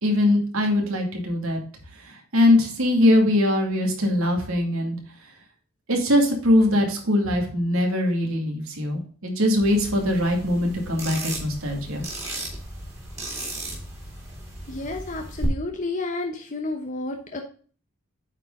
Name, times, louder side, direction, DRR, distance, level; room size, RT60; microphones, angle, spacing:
voice 1, 0.0-1.6 2.0-5.0 5.9-12.1, left 1 dB, 65° right, 2 dB, 2.4 m, -22 dB
sound 1, 9.6-15.5, right 1 dB, 15° right, 2.5 m, -36 dB
voice 2, 14.7-17.4, left 2 dB, 35° left, 3 dB, 0.9 m, -31 dB
8.8 x 4.7 x 3.7 m, 0.43 s
head